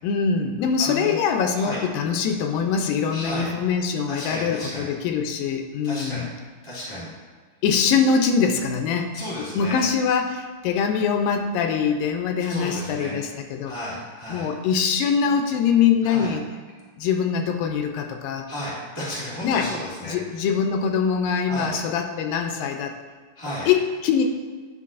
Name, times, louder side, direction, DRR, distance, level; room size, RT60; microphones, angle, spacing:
voice 1, 0.0-6.3 7.6-9.1 9.4-13.7 14.3-16.4 17.0-18.5 19.4-19.7 20.1-23.0 23.7-24.2, left 6 dB, 80° left, 4 dB, 2.3 m, -23 dB
voice 2, 0.8-1.2 1.5-1.8 3.1-3.5 4.1-4.9 5.8-6.3 6.6-7.1 9.1-9.8 12.4-13.1 13.6-14.5 16.0-16.3 18.5-20.5 21.5-21.8 23.3-23.7, left 1 dB, 15° right, -8 dB, 1.0 m, -33 dB
9.7 x 6.0 x 2.5 m, 1.5 s
omnidirectional pair, 4.0 m